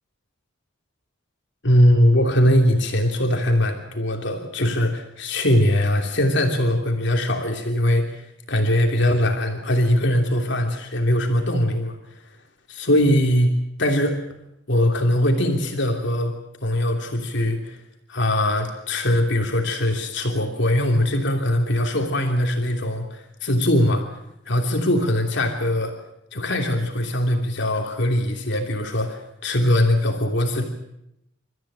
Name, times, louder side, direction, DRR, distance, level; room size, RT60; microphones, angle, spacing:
voice 1, 1.6-12.0 12.7-13.5 13.8-14.2 14.7-16.3 16.6-17.8 18.1-24.0 24.5-25.9 26.3-30.6, left 1 dB, 65° left, 3 dB, 3.0 m, -21 dB
29.0 x 14.0 x 9.0 m, 0.83 s
head